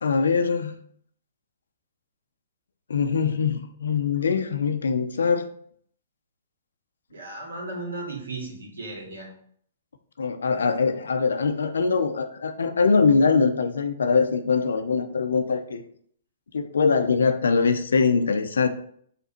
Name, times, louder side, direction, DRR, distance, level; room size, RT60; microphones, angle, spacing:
voice 1, 0.0-0.8 2.9-5.5 10.2-15.8 16.5-18.7, left 5 dB, 80° left, 8 dB, 0.7 m, -22 dB
voice 2, 7.1-9.3 10.4-10.5, right 2 dB, 85° right, -2 dB, 2.5 m, -36 dB
5.8 x 4.1 x 4.4 m, 0.63 s
hypercardioid pair, 130°, 0 cm